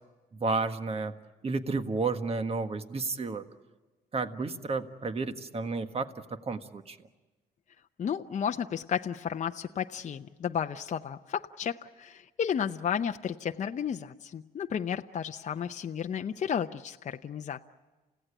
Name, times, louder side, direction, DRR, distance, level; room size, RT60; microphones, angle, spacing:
voice 1, 0.3-1.1 1.4-3.4 4.1-7.0, right 3 dB, 35° right, 8 dB, 1.6 m, -32 dB
voice 2, 8.0-17.6, left 8 dB, 45° left, 6 dB, 0.7 m, -33 dB
29.0 x 16.5 x 10.0 m, 1.2 s
cardioid pair, 75°, 17 cm